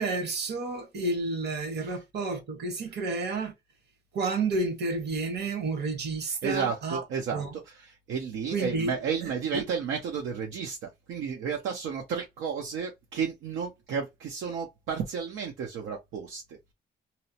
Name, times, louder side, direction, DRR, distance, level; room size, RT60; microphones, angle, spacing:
voice 1, 0.0-3.5 4.1-7.0 7.3-7.5 8.5-8.9 9.2-9.6, right 3 dB, 55° right, 1.1 m, -30 dB
voice 2, 6.2-16.7, right 6 dB, 80° right, 0.6 m, -33 dB
2.7 x 2.0 x 2.7 m
cardioid pair, 90°, 20 cm